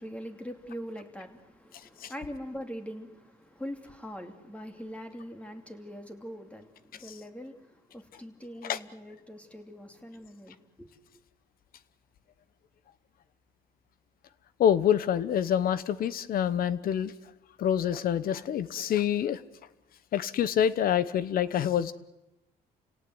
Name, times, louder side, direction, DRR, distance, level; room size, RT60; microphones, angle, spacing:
voice 1, 0.0-10.9, equal, 5° left, 2.8 m, -42 dB
voice 2, 14.6-17.1 17.6-19.4 20.1-21.9, left 9 dB, 60° left, 1.1 m, -26 dB
29.5 x 17.5 x 8.0 m
cardioid pair, 110°, 17 cm